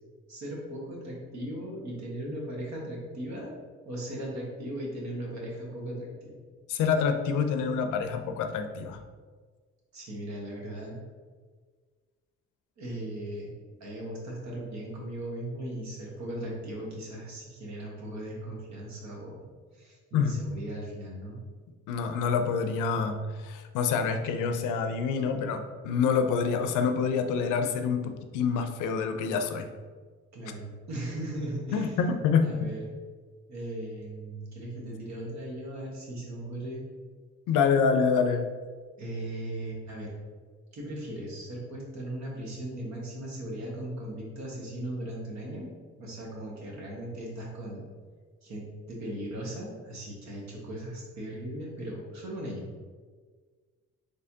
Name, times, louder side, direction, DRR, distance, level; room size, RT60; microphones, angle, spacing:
voice 1, 0.3-3.5 3.8-6.4 9.9-11.0 12.8-13.5 13.8-19.4 19.7-21.4 30.3-32.0 32.4-32.9 33.5-36.8 39.0-40.2 40.7-45.7 46.0-47.8 48.4-52.8, right 1 dB, 65° right, -3 dB, 1.4 m, -38 dB
voice 2, 6.7-9.0 20.1-20.4 21.9-29.7 31.7-32.7 37.5-38.4, left 6 dB, 90° left, 7 dB, 0.5 m, -27 dB
4.2 x 3.3 x 2.7 m, 1.5 s
cardioid pair, 90°, 30 cm